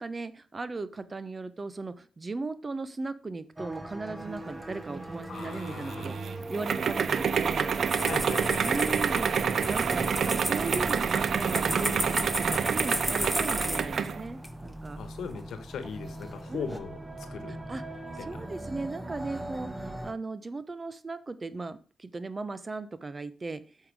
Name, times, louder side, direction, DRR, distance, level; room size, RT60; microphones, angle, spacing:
voice 1, 0.0-6.2 6.5-7.7 8.6-15.0 16.5-16.6 17.5-17.8 18.2-23.8, right 3 dB, 35° right, 13 dB, 0.8 m, -37 dB
sound 1, 3.6-20.1, right 1 dB, 15° right, 1.2 m, -40 dB
voice 2, 5.3-6.1 7.9-9.0 15.0-17.6 18.2-18.4, left 5 dB, 85° left, 10 dB, 1.1 m, -39 dB
sound 2, 5.4-14.2, right 6 dB, 70° right, 0.5 m, -28 dB
sound 3, 7.9-14.1 14.4-14.5 15.3-15.9 16.2-16.8, equal, ahead, 1.3 m, -35 dB
7.9 x 5.8 x 4.8 m, 0.39 s
cardioid pair, 55°, 0 cm